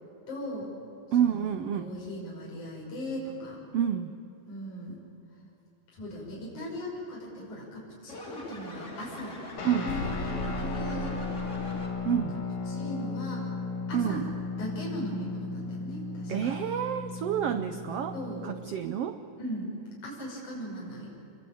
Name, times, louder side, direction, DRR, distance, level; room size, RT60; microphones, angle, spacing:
voice 1, 0.3-0.7 1.2-3.6 4.5-5.0 5.9-9.3 9.8-10.0 10.3-11.4 12.7-13.4 13.9-14.2 14.6-16.5 18.1-18.5 19.4-19.7 20.0-21.1, equal, 60° left, -4 dB, 7.3 m, -38 dB
voice 2, 1.1-1.9 3.7-4.1 9.6-9.9 12.0-12.4 13.9-14.3 16.3-19.2, right 9 dB, 85° right, 9 dB, 1.3 m, -29 dB
sound 1, 8.1-12.2, left 2 dB, 20° left, 3.4 m, -43 dB
Guitar, 9.6-18.7, left 4 dB, 90° left, 4.7 m, -35 dB
sound 2, 9.9-12.6, right 1 dB, 40° left, 2.1 m, -38 dB
27.5 x 22.5 x 8.8 m, 2.8 s
omnidirectional pair, 3.9 m